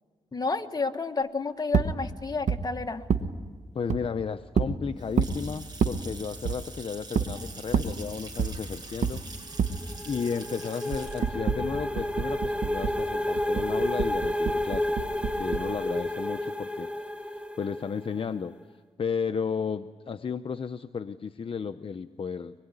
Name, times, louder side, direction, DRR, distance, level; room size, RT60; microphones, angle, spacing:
voice 1, 0.3-3.0, left 3 dB, 35° left, 5 dB, 1.6 m, -30 dB
sound 1, 1.7-1.9 2.5-2.6 3.1-3.3 3.9-4.0 4.6-4.7 5.2-5.4 5.8-6.0 6.5-6.6 7.2-7.3 7.7-7.9 8.4-8.6 9.0-9.2 9.6-9.8 10.9-13.0 13.4-15.7, right 6 dB, 85° right, 1.2 m, -27 dB
voice 2, 3.7-9.2 9.5-9.6 10.1-15.0 15.4-16.9 17.6-18.5 19.0-22.5, left 6 dB, 50° left, 10 dB, 0.7 m, -33 dB
Water tap faucet / Sink (filling or washing) / Splash splatter, 4.7-13.6, right 3 dB, 35° right, 7.8 m, -45 dB
sound 2, 9.6-18.2, left 1 dB, 10° right, 2.0 m, -31 dB
24.5 x 22.0 x 9.7 m, 1.5 s
cardioid pair, 85°, 12 cm